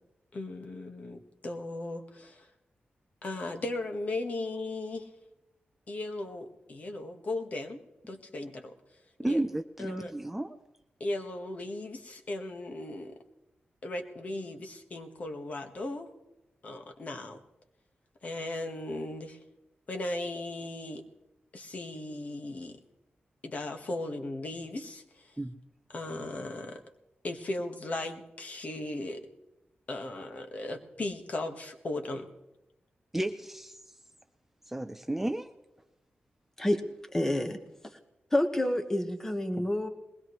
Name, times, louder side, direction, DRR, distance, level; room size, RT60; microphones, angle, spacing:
voice 1, 0.3-2.5 3.2-5.1 5.9-7.8 8.1-8.7 9.3-9.4 9.8-10.1 11.0-13.2 13.8-16.1 16.6-17.4 18.2-19.4 19.9-21.0 21.5-22.8 23.4-25.3 25.9-26.8 27.2-29.3 29.9-32.3, left 2 dB, 40° left, 5 dB, 1.5 m, -37 dB
voice 2, 9.2-10.6 25.4-25.5 33.1-33.8 34.7-35.5, right 1 dB, 10° right, 7 dB, 0.5 m, -32 dB
voice 3, 37.1-37.6 38.3-39.9, left 1 dB, 10° left, 6 dB, 1.3 m, -28 dB
21.5 x 19.5 x 3.1 m, 0.97 s
wide cardioid pair, 150°, 4 cm